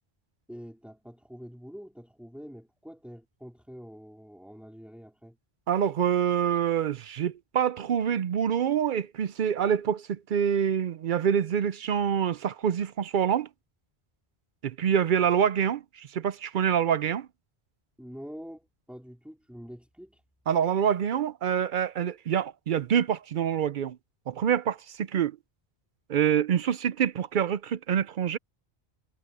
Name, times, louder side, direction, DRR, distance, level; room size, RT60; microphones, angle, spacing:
voice 1, 0.5-5.4 18.0-20.2, equal, ahead, 3.6 m, -45 dB
voice 2, 5.7-13.5 14.6-17.3 20.5-24.0 24.3-25.4 26.1-28.4, right 8 dB, 60° right, 0.6 m, -26 dB
omnidirectional pair, 1.1 m